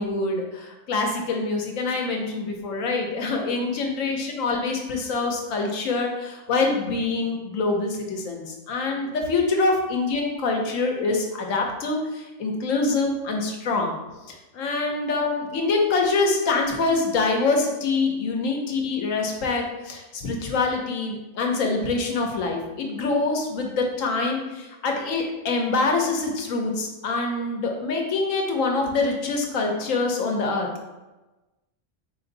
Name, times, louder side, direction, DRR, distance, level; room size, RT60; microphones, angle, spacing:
voice 1, 0.0-14.0 14.3-30.7, left 3 dB, 80° left, 2 dB, 1.1 m, -25 dB
4.5 x 2.6 x 3.9 m, 1.1 s
omnidirectional pair, 1.4 m